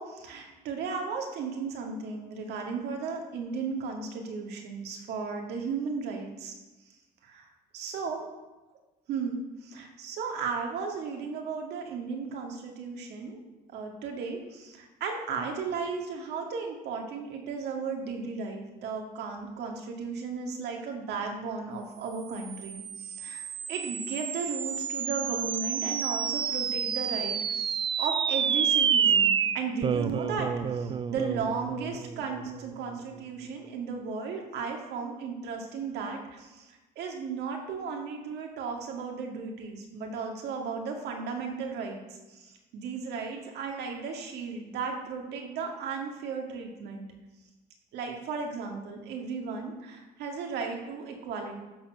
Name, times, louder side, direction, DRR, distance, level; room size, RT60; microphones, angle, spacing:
voice 1, 0.0-6.5 7.2-7.5 7.7-8.3 9.1-13.4 13.7-23.4 23.7-42.0 42.3-47.1 47.9-51.6, right 5 dB, 80° right, 2 dB, 2.1 m, -35 dB
sound 1, 22.3-33.0, right 7 dB, 30° right, 0.4 m, -29 dB
13.0 x 4.6 x 6.5 m, 1.1 s
cardioid pair, 110°, 17 cm